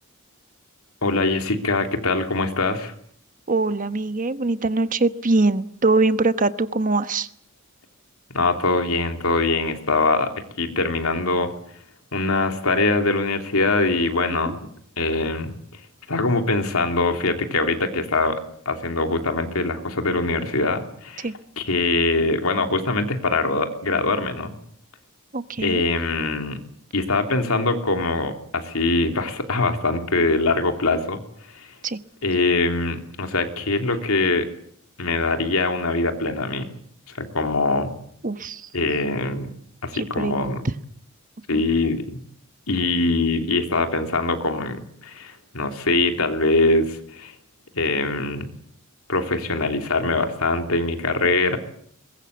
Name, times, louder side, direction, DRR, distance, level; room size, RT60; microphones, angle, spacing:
voice 1, 1.0-2.9 8.3-10.3 10.6-11.5 12.1-14.6 15.0-15.5 16.1-21.3 21.6-24.5 25.6-26.6 26.9-31.2 31.5-31.7 32.2-34.5 35.0-36.7 37.1-37.9 38.7-39.5 39.8-40.6 41.5-42.2 42.7-47.3 47.7-48.5 49.1-51.6, left 3 dB, 90° left, 5 dB, 3.2 m, -23 dB
voice 2, 3.5-7.3 14.5-14.6 21.2-21.3 25.3-25.9 31.8-32.0 38.2-38.6 39.9-40.6 41.5-41.6, right 3 dB, 40° right, 12 dB, 1.1 m, -23 dB
22.5 x 21.5 x 8.3 m, 0.65 s
head